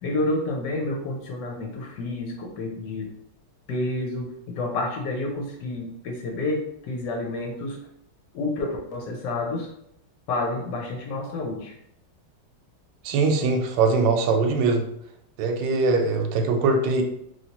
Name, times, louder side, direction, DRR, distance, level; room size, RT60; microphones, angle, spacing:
voice 1, 0.0-3.1 3.7-7.8 8.3-9.7 10.3-11.7, left 2 dB, 70° left, 1 dB, 1.1 m, -29 dB
voice 2, 13.0-14.8 15.4-17.0, right 4 dB, 70° right, 3 dB, 1.1 m, -22 dB
3.1 x 2.8 x 2.8 m, 0.74 s
omnidirectional pair, 2.2 m